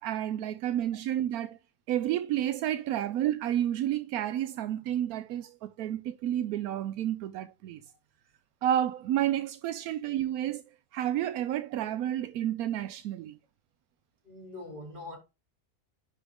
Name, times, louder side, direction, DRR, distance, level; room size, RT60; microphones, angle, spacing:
voice 1, 0.0-1.6 1.9-7.8 8.6-10.6 10.9-13.4, right 11 dB, 85° right, 1.1 m, -30 dB
voice 2, 14.2-15.2, left 2 dB, 35° right, 3.2 m, -42 dB
9.9 x 3.9 x 3.5 m
omnidirectional pair, 1.5 m